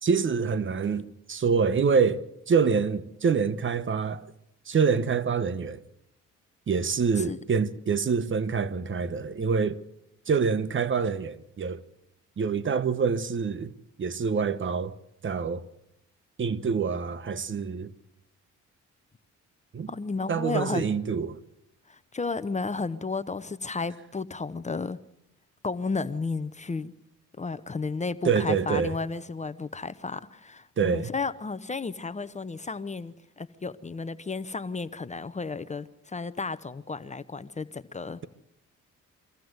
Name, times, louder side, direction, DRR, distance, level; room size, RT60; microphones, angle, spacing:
voice 1, 0.0-4.2 4.7-5.8 6.7-9.8 10.3-11.8 12.4-13.7 14.0-14.9 15.2-15.6 16.4-17.9 19.7-19.9 20.3-21.4 28.2-29.0 30.8-31.1, right 5 dB, 40° right, 1.2 m, -26 dB
voice 2, 19.9-20.9 21.9-25.0 25.6-26.9 27.4-38.2, left 4 dB, 25° left, 0.9 m, -33 dB
24.5 x 15.5 x 8.0 m
cardioid pair, 90°, 30 cm